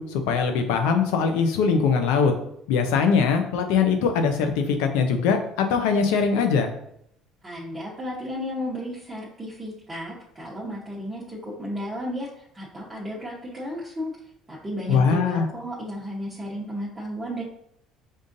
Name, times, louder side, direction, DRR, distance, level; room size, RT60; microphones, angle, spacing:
voice 1, 0.0-2.3 2.7-6.7 14.9-15.5, left 5 dB, 90° left, 6 dB, 0.5 m, -21 dB
voice 2, 7.4-14.1 14.5-17.4, equal, 15° right, -7 dB, 0.9 m, -33 dB
5.3 x 2.5 x 2.6 m, 0.74 s
cardioid pair, 105°, 0 cm